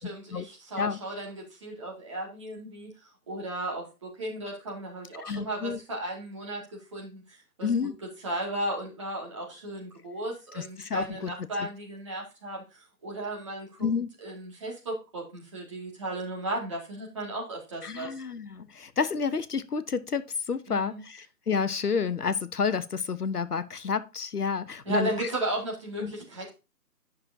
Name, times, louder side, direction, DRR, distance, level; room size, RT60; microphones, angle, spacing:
voice 1, 0.0-2.9 3.3-7.7 8.2-13.9 14.2-18.1 20.7-21.0 24.9-26.5, right 1 dB, 20° right, 2.0 m, -35 dB
voice 2, 5.2-5.8 7.6-8.0 10.5-11.3 11.6-11.7 13.8-14.1 17.8-25.3 26.0-26.1, left 5 dB, 70° left, 0.9 m, -30 dB
10.5 x 6.2 x 2.6 m
figure-of-eight pair, 165°, 48 cm